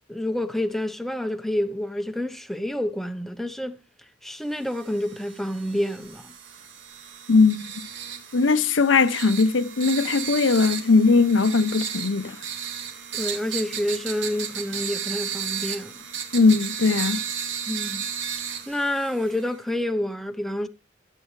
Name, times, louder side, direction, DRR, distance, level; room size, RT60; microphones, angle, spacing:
voice 1, 0.1-3.8 4.2-6.3 13.1-15.9 17.7-18.1 18.7-20.7, left 1 dB, ahead, 0.7 m, -28 dB
sound 1, 4.7-19.6, right 8 dB, 70° right, 2.2 m, -34 dB
voice 2, 7.3-7.6 8.3-12.4 16.3-17.2, left 4 dB, 75° left, 0.7 m, -19 dB
14.0 x 8.5 x 3.2 m
head